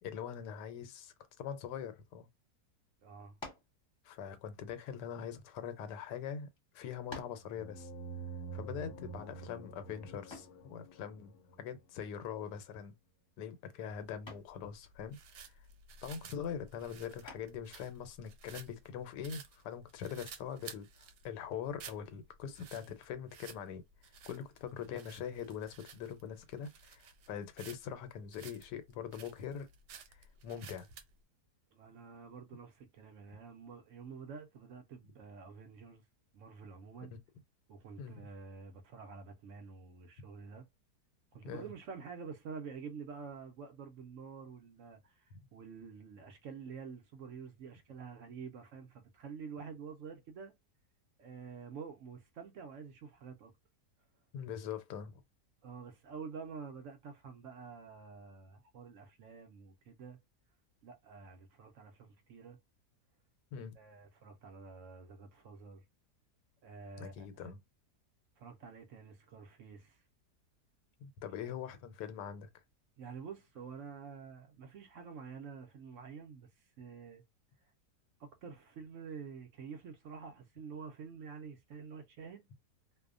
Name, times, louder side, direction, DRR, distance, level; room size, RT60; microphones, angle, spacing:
voice 1, 0.0-2.3 4.0-6.5 6.7-7.9 8.5-12.9 13.4-15.2 15.4-15.6 16.0-23.8 24.3-29.7 30.1-30.9 37.1-37.2 38.0-38.2 41.4-41.7 54.3-55.2 63.5-63.7 67.0-67.6 71.0-72.5, left 8 dB, 90° left, 1.2 m, -43 dB
voice 2, 3.0-3.4 31.7-36.0 36.3-37.1 37.7-40.6 41.3-50.5 51.2-53.5 55.6-60.2 60.8-62.6 63.8-65.8 66.6-67.5 68.4-70.0 71.4-71.5 73.0-76.5 76.8-77.2 78.2-82.4, right 5 dB, 65° right, 0.8 m, -48 dB
sound 1, 3.4-3.8 4.7-5.9 6.6-6.7 7.1-7.5 10.3-10.6 12.5-12.9 13.3-13.6 14.3-14.6 17.2-17.7, left 2 dB, 20° left, 0.8 m, -49 dB
sound 2, 7.5-12.0, right 4 dB, 65° left, 0.7 m, -47 dB
sound 3, 13.9-31.1, right 6 dB, 85° right, 1.2 m, -54 dB
2.7 x 2.1 x 2.3 m
omnidirectional pair, 1.7 m